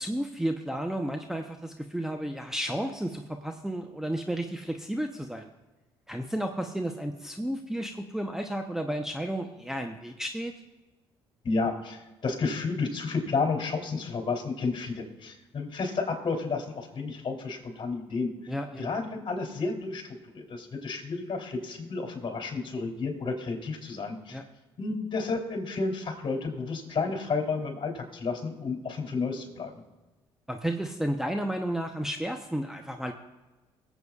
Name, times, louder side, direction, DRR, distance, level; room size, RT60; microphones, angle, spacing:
voice 1, 0.0-5.5 6.1-10.5 18.5-18.9 24.3-24.4 30.5-33.1, right 1 dB, 5° right, 3 dB, 0.8 m, -32 dB
voice 2, 11.4-18.5 18.8-24.4 24.8-29.7, left 4 dB, 45° left, 2 dB, 3.1 m, -31 dB
22.5 x 8.1 x 2.4 m, 1.1 s
supercardioid pair, 65°, 12 cm